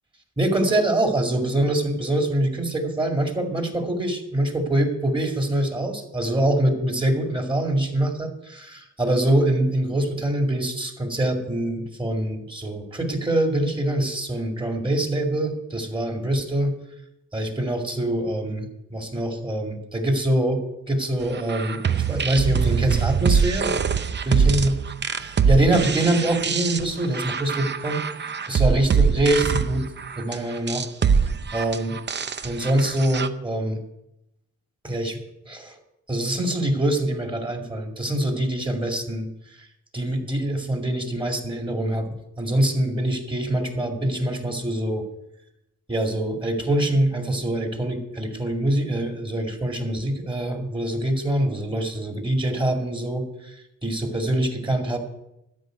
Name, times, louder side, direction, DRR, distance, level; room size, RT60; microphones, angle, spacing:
voice 1, 0.4-16.8 17.3-20.6 20.9-23.7 24.3-24.8 25.5-29.9 30.2-30.9 31.3-32.0 32.4-33.8 34.8-35.2 35.5-35.8 36.1-39.7 39.9-45.1 45.9-55.0, right 1 dB, 15° right, 3 dB, 2.2 m, -24 dB
sound 1, 21.3-33.3, right 6 dB, 35° right, 0.7 m, -23 dB
13.0 x 5.7 x 9.2 m, 0.84 s
wide cardioid pair, 115°, 31 cm